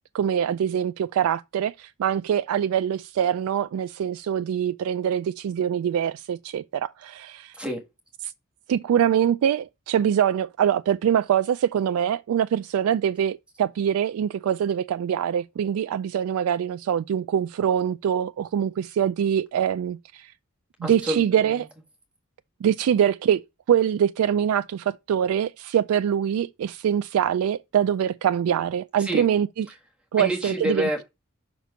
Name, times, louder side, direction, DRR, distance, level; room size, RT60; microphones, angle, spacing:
voice 1, 0.1-7.5 8.7-20.3 20.8-21.7 22.6-23.4 23.7-29.5 30.1-30.9, right 9 dB, 90° right, 0.3 m, -24 dB
voice 2, 7.5-7.8 20.8-21.7 29.0-29.2 29.7-29.8 30.1-31.1, right 1 dB, 5° right, 1.4 m, -29 dB
6.0 x 4.4 x 5.6 m
head